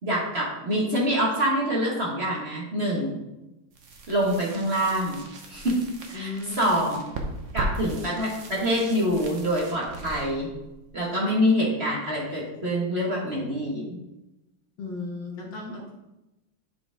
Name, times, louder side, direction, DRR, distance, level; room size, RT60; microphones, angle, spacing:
voice 1, 0.0-3.2 4.1-5.8 6.1-7.0 7.5-10.5 10.9-14.0, equal, 30° right, -4 dB, 1.6 m, -26 dB
sound 1, 3.7-11.5, right 2 dB, 50° right, 0.9 m, -38 dB
voice 2, 6.1-6.9 14.8-16.0, left 3 dB, 65° left, 0 dB, 1.9 m, -35 dB
8.5 x 5.1 x 3.5 m, 0.96 s
omnidirectional pair, 2.3 m